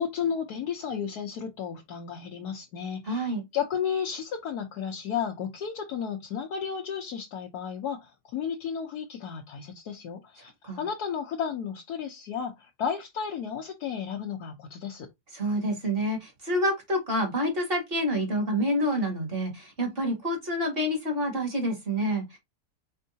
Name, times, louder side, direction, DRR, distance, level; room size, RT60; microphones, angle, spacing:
voice 1, 0.0-10.5 10.8-15.1, left 7 dB, 70° left, 1.3 m, -33 dB
voice 2, 3.0-3.4 10.6-10.9 15.3-22.4, equal, 35° right, 2.0 m, -28 dB
4.5 x 4.2 x 2.7 m
omnidirectional pair, 1.8 m